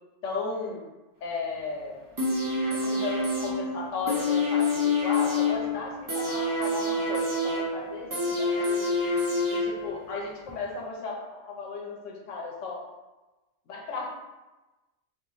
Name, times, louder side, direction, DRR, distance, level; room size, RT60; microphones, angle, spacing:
voice 1, 0.2-0.8 1.2-2.0 2.7-9.0 9.5-12.8 13.7-14.1, left 4 dB, 85° left, -1 dB, 1.1 m, -35 dB
sound 1, 2.2-10.1 10.5-10.6, left 2 dB, 30° right, 0.4 m, -27 dB
2.9 x 2.6 x 3.9 m, 1.1 s
omnidirectional pair, 1.2 m